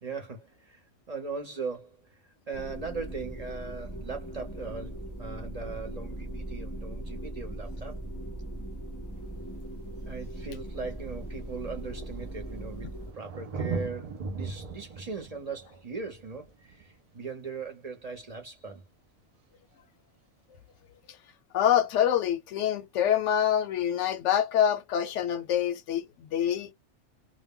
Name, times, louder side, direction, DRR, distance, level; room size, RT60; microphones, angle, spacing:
voice 1, 0.0-8.0 10.0-18.8, right 4 dB, 40° right, 0.7 m, -39 dB
sound 1, 2.5-13.1, right 1 dB, 20° left, 0.5 m, -39 dB
Thunder, 9.2-9.3 10.3-10.4 10.6-17.9 19.6-19.7, right 4 dB, 70° right, 0.3 m, -40 dB
voice 2, 21.5-26.7, left 10 dB, 85° left, 0.9 m, -26 dB
2.2 x 2.1 x 3.5 m
omnidirectional pair, 1.2 m